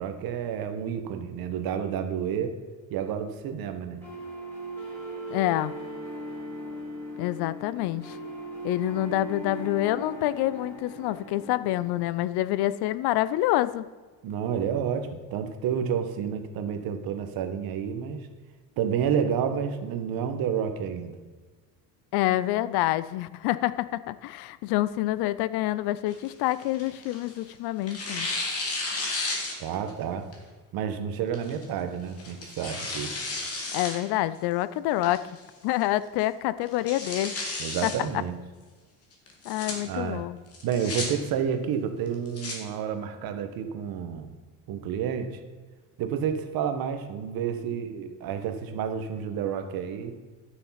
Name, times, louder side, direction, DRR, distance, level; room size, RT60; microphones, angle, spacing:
voice 1, 0.0-2.6 2.9-4.0 14.2-18.3 18.8-21.1 29.6-30.2 30.7-33.1 37.6-38.4 39.8-40.2 40.6-44.3 44.7-45.4 46.0-50.1, right 8 dB, 60° right, 8 dB, 1.3 m, -30 dB
sound 1, 4.0-12.0, right 1 dB, 5° left, 3.8 m, -38 dB
voice 2, 5.3-5.7 7.2-8.2 8.6-13.9 22.1-28.3 33.7-35.2 35.6-37.3 37.8-37.9 39.5-40.4, left 15 dB, 70° left, 16 dB, 0.6 m, -27 dB
Tearing, 26.1-27.4 27.9-29.9 30.3-30.4 31.3-31.6 32.2-34.0 34.3-34.4 35.0-35.4 35.8-35.9 36.2-36.3 36.7-38.0 39.3-39.7 40.5-41.1 42.1-42.6, left 3 dB, 35° left, 2.3 m, -33 dB
12.0 x 6.6 x 5.7 m, 1.4 s
cardioid pair, 155°, 41 cm